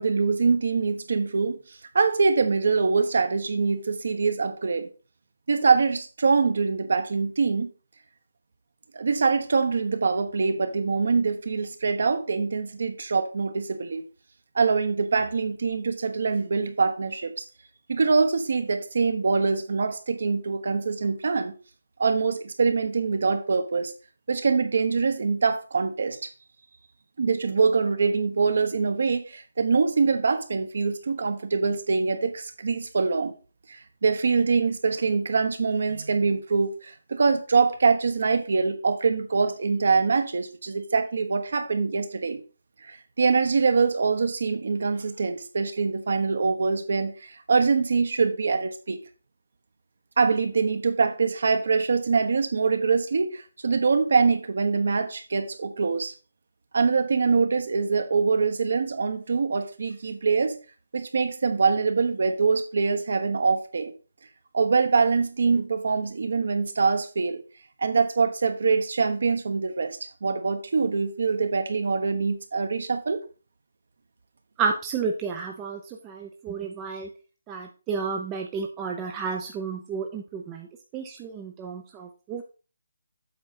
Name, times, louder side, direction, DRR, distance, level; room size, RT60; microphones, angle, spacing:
voice 1, 0.0-4.9 5.5-7.7 8.9-14.0 14.5-17.4 17.9-21.5 22.0-23.9 24.3-26.2 27.2-33.3 33.7-42.4 42.9-49.0 50.2-56.1 56.7-60.6 60.9-63.9 64.5-67.4 67.8-73.2, right 4 dB, 50° right, 1.1 m, -24 dB
voice 2, 74.6-77.1 77.5-80.7 80.9-82.4, right 5 dB, 10° right, 0.5 m, -31 dB
7.9 x 5.0 x 4.2 m
hypercardioid pair, 175°, 0 cm